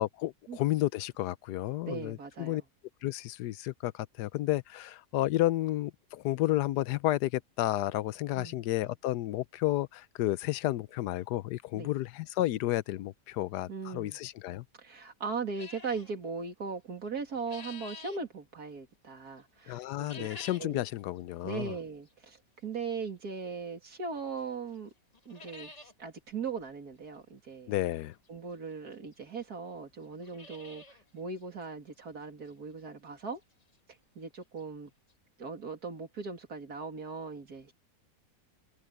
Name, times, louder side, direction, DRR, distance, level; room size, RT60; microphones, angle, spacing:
voice 1, 0.0-2.6 3.0-14.6 19.7-21.7 27.7-28.1, left 15 dB, 85° left, 1.2 m, -31 dB
voice 2, 1.9-2.6 8.3-8.6 11.7-11.9 13.7-14.2 14.8-20.3 20.6-20.8 21.4-24.9 25.2-25.7 26.0-27.7 28.3-33.4 34.1-34.9 35.4-37.7, right 5 dB, 70° right, 3.2 m, -39 dB
sound 1, 15.5-16.1 17.1-18.2 19.9-20.8 21.2-21.3 22.1-22.2 23.9-24.0 24.4-24.5 24.8-24.9 25.1-25.9 26.3-26.4 26.6-26.7 28.3-28.4 29.1-29.2 29.4-29.5 30.0-31.0 31.4-31.5 32.0-32.1 32.5-32.6 34.3-34.4 34.6-34.7 35.1-35.2, left 3 dB, 25° left, 1.3 m, -48 dB
omnidirectional pair, 1.7 m